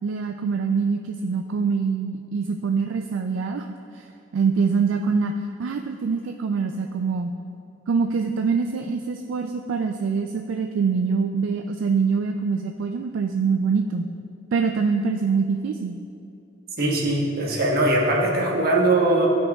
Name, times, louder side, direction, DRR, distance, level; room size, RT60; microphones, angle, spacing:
voice 1, 0.0-4.0 4.3-5.3 5.6-7.3 7.9-14.1 14.5-16.0, right 5 dB, 70° right, 4 dB, 0.3 m, -24 dB
voice 2, 16.8-19.3, right 2 dB, 50° right, -2 dB, 1.1 m, -21 dB
13.0 x 5.5 x 2.3 m, 2.6 s
head